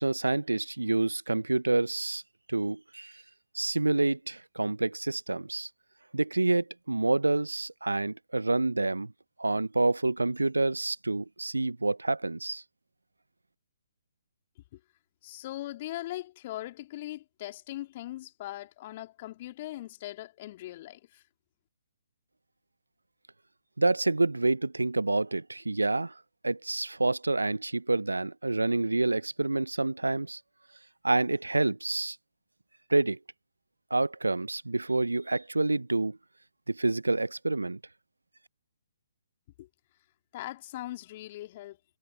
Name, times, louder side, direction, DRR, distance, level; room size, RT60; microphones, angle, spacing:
voice 1, 0.0-2.2 2.5-3.2 3.5-5.7 6.1-9.1 9.4-12.6 23.8-26.1 26.4-30.4 31.0-32.2 32.9-33.2 33.9-36.2 36.7-37.8, right 2 dB, 80° right, 0.8 m, -28 dB
voice 2, 15.2-21.2 39.6-39.7 40.3-41.8, left 15 dB, 35° left, 2.9 m, -40 dB
figure-of-eight pair, 135°, 0 cm